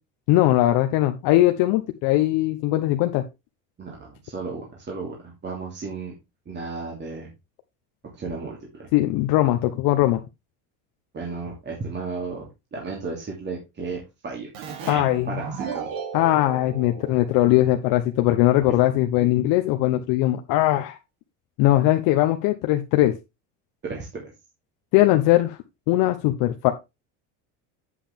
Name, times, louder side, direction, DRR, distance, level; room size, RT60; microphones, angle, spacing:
voice 1, 0.3-3.2 8.9-10.2 14.9-15.4 16.1-21.0 21.6-23.1 24.9-25.6 25.9-26.7, left 15 dB, 75° left, 5 dB, 1.0 m, -20 dB
voice 2, 3.8-6.1 6.5-7.3 8.2-8.9 11.1-14.5 14.8-15.9 23.8-24.2, right 4 dB, 30° right, -2 dB, 2.8 m, -34 dB
Keyboard (musical), 14.5-17.9, right 6 dB, 70° right, 3.0 m, -36 dB
8.4 x 7.5 x 3.5 m, 0.24 s
cardioid pair, 120°, 36 cm